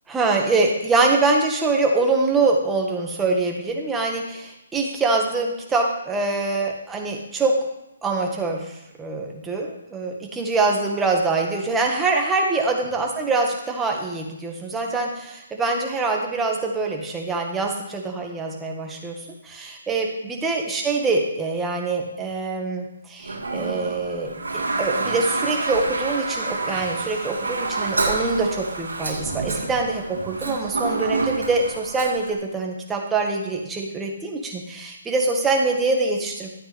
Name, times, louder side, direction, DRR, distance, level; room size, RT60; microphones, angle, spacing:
voice 1, 0.1-7.5 8.0-36.5, right 3 dB, 10° right, 0 dB, 1.7 m, -24 dB
Toilet flush, 23.2-32.3, right 3 dB, 85° right, 1.9 m, -28 dB
12.5 x 8.8 x 3.5 m, 0.87 s
figure-of-eight pair, 145°, 0 cm